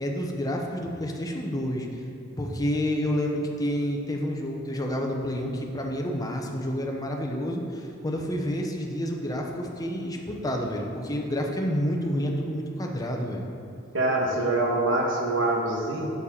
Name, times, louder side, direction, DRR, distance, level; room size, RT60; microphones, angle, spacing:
voice 1, 0.0-1.9 2.4-13.5, equal, 20° left, 1 dB, 0.9 m, -29 dB
voice 2, 13.9-16.1, right 2 dB, 70° right, -1 dB, 1.5 m, -25 dB
7.2 x 6.8 x 5.7 m, 2.6 s
head